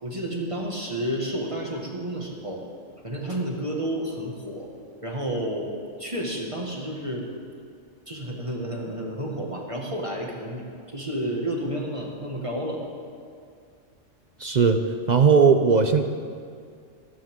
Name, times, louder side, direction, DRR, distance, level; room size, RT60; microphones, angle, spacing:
voice 1, 0.0-2.6 3.0-4.7 5.0-5.7 6.0-7.2 8.1-10.6 10.9-12.8, right 1 dB, 25° right, -2 dB, 1.9 m, -30 dB
voice 2, 14.4-14.8 15.1-16.0, right 5 dB, 40° right, 7 dB, 0.7 m, -18 dB
20.5 x 15.5 x 3.7 m, 2.2 s
omnidirectional pair, 1.3 m